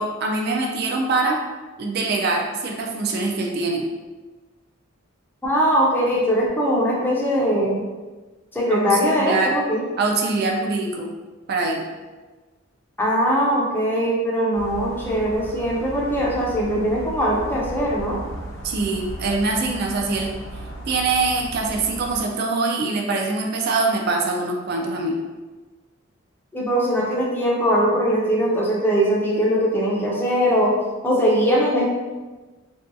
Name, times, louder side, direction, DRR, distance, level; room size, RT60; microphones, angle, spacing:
voice 1, 0.0-1.4 1.8-3.8 8.7-9.5 10.0-11.1 11.5-11.8 18.6-20.3 20.9-25.1, right 3 dB, 50° right, 1 dB, 0.4 m, -23 dB
voice 2, 5.4-7.8 8.5-9.8 13.0-18.2 26.5-30.7 31.0-31.8, equal, 10° left, -5 dB, 0.5 m, -21 dB
sound 1, 14.5-22.2, right 1 dB, 75° left, 0.8 m, -36 dB
2.6 x 2.2 x 2.6 m, 1.3 s
head